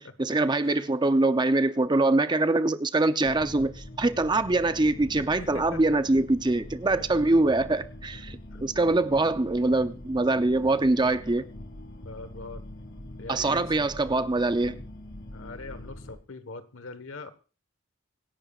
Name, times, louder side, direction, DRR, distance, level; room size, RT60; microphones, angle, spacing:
voice 1, 0.0-11.5 13.3-14.8, right 2 dB, 20° right, 0.6 m, -24 dB
sound 1, 3.2-16.2, left 1 dB, 60° left, 2.3 m, -43 dB
voice 2, 5.1-5.8 8.5-8.6 12.0-12.6 13.2-13.7 15.3-17.3, left 3 dB, 80° left, 1.3 m, -42 dB
25.0 x 11.0 x 2.4 m
head